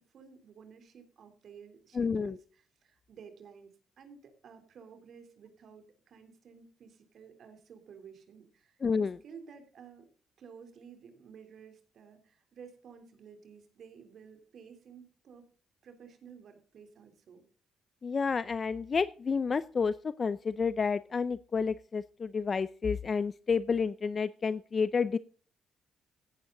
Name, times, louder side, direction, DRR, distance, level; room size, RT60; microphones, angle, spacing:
voice 1, 0.1-10.1 10.4-15.4 15.8-17.5, right 6 dB, 60° right, 7 dB, 3.5 m, -53 dB
voice 2, 2.0-2.3 8.8-9.2 18.0-25.2, left 5 dB, 40° left, 16 dB, 0.6 m, -30 dB
16.0 x 11.0 x 3.9 m, 0.40 s
cardioid pair, 90°, 0 cm